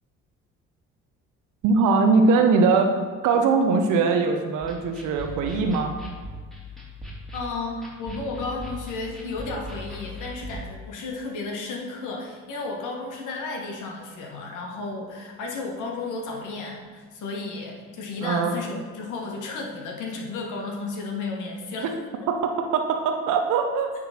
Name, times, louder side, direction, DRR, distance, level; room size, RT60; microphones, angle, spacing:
voice 1, 1.6-2.9 3.2-6.0 18.2-18.6 22.7-23.9, right 4 dB, 75° right, 4 dB, 0.7 m, -21 dB
sound 1, 4.6-10.6, left 1 dB, ahead, 2.1 m, -39 dB
voice 2, 7.3-21.9, left 3 dB, 70° left, 0 dB, 1.5 m, -33 dB
8.5 x 3.8 x 4.3 m, 1.5 s
supercardioid pair, 65°, 32 cm